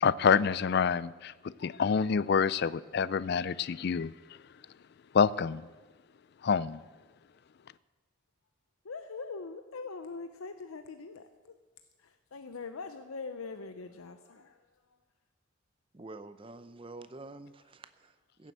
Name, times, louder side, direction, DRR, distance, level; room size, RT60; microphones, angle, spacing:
voice 1, 0.0-4.1 5.1-5.7 6.4-6.8, left 6 dB, 50° left, 19 dB, 0.3 m, -27 dB
voice 2, 8.8-11.6 12.0-15.0, left 4 dB, 90° left, 8 dB, 0.7 m, -43 dB
voice 3, 15.9-18.5, right 2 dB, 25° right, 12 dB, 0.6 m, -48 dB
15.0 x 7.6 x 8.2 m, 1.3 s
head